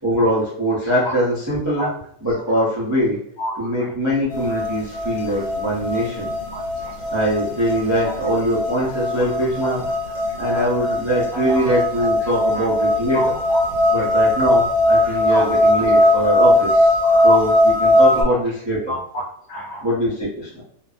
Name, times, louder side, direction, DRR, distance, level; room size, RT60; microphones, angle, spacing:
voice 1, 0.0-1.9 2.2-3.2 3.6-6.3 7.1-9.9 10.4-13.4 13.9-16.9 17.2-19.0 19.8-20.6, equal, 20° right, -8 dB, 0.4 m, -22 dB
voice 2, 3.4-3.9 5.3-5.4 6.5-6.9 8.0-8.1 9.6-9.7 10.5-10.7 11.3-12.1 12.5-12.6 13.1-13.6 14.0-14.1 15.0-15.5 17.0-17.4 18.1-18.4 18.9-19.9, equal, 65° left, -6 dB, 0.6 m, -30 dB
sound 1, 4.3-18.2, left 1 dB, 80° left, 1.3 m, -19 dB
2.6 x 2.1 x 2.4 m, 0.67 s
omnidirectional pair, 1.6 m